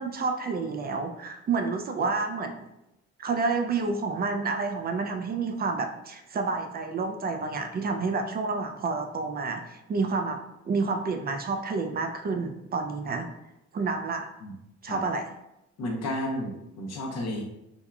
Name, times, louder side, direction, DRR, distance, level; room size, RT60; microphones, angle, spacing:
voice 1, 0.0-2.7 3.2-13.3 13.7-14.3 14.8-15.2, right 4 dB, 30° right, 5 dB, 0.4 m, -29 dB
voice 2, 15.8-17.4, left 1 dB, 60° left, 0 dB, 0.8 m, -32 dB
3.5 x 2.3 x 2.2 m, 0.88 s
cardioid pair, 90°, 30 cm